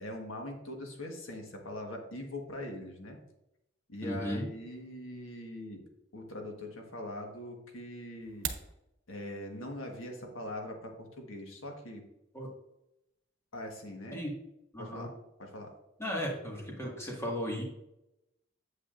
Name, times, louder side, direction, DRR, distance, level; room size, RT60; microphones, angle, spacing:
voice 1, 0.0-3.2 3.9-5.8 6.1-8.5 9.1-12.0 13.5-14.2 14.8-15.1 15.4-15.7, left 1 dB, 80° left, 2 dB, 1.5 m, -42 dB
voice 2, 4.0-4.5 12.3-12.5 14.1-14.3 14.7-15.1 16.0-17.6, equal, 15° left, -2 dB, 1.8 m, -35 dB
sound 1, 8.2-8.7, right 8 dB, 80° right, 1.0 m, -37 dB
8.4 x 8.1 x 2.6 m, 0.87 s
head